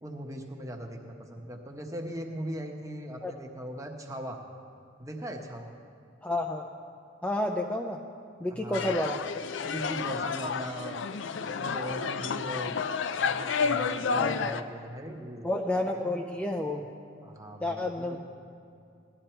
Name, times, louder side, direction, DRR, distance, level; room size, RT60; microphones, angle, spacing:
voice 1, 0.0-4.4 5.0-5.7 8.5-9.0 9.6-12.8 13.1-15.5 17.2-18.2, equal, 15° right, 2 dB, 1.1 m, -39 dB
voice 2, 6.2-6.7 7.2-8.0 8.4-9.2 14.2-14.6 15.4-16.9 17.6-18.2, left 1 dB, 5° left, 1 dB, 0.5 m, -30 dB
sound 1, 8.7-14.6, left 5 dB, 70° left, 0.5 m, -31 dB
17.0 x 11.5 x 4.5 m, 2.5 s
head